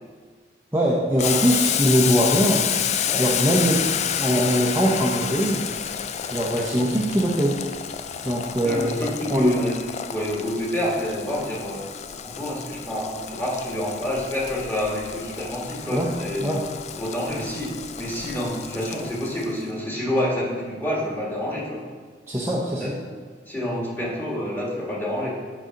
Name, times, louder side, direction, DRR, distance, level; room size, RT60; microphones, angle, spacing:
voice 1, 0.7-2.6 3.2-3.8 4.2-5.6 6.3-7.6 8.2-9.0 9.3-9.5 15.9-16.1 16.4-16.6 22.3-22.9, equal, 15° right, -4 dB, 0.7 m, -22 dB
Boiling, 1.2-19.6, left 9 dB, 40° left, 0.3 m, -30 dB
voice 2, 6.4-6.9 8.6-11.9 12.2-16.6 17.0-21.8 22.7-23.0 23.5-25.4, left 1 dB, 10° left, -5 dB, 1.7 m, -28 dB
8.9 x 4.1 x 5.1 m, 1.5 s
head